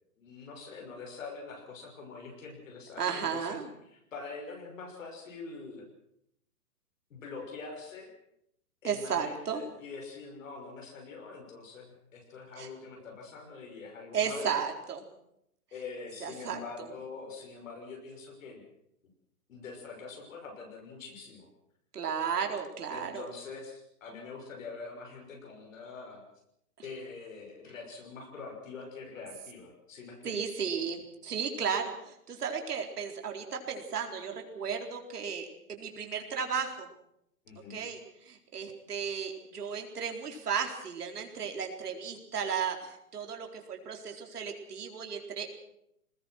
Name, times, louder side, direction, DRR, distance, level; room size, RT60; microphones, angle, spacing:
voice 1, 0.2-3.6 3.9-5.8 7.1-8.1 8.8-14.6 15.7-18.6 19.5-21.5 22.9-26.2 26.8-30.3 37.4-37.8, left 4 dB, 55° left, 2 dB, 6.1 m, -44 dB
voice 2, 3.0-3.7 8.8-9.6 12.6-12.7 14.1-15.0 16.2-16.6 21.9-23.2 30.2-36.9 37.7-38.0 38.3-45.5, right 6 dB, 80° right, 3 dB, 4.3 m, -34 dB
23.5 x 20.0 x 6.4 m, 0.77 s
hypercardioid pair, 170°, 46 cm